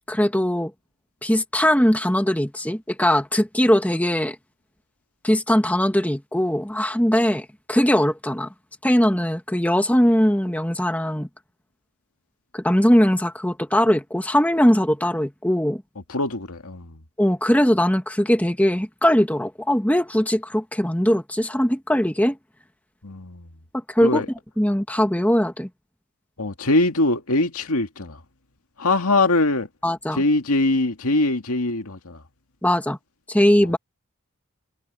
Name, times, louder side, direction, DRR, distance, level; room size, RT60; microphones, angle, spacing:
voice 1, 0.1-0.7 1.2-4.4 5.2-8.5 8.8-11.3 12.5-15.8 17.2-22.4 23.9-24.2 24.6-25.7 29.8-30.2 32.6-33.0 33.3-33.8, equal, 5° left, 1.4 m, -20 dB
voice 2, 16.1-17.0 23.0-23.5 24.0-24.3 26.4-28.2 28.8-29.7 30.2-32.2, left 2 dB, 80° left, 2.1 m, -22 dB
head